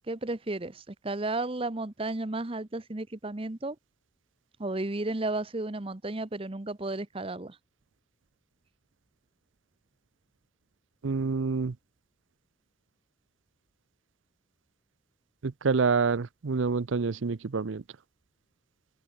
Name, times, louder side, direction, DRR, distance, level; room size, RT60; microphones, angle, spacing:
voice 1, 0.1-3.8 4.6-7.6, right 2 dB, 30° right, 0.9 m, -33 dB
voice 2, 11.0-11.8 15.4-17.8, right 4 dB, 80° right, 0.6 m, -27 dB
open air
head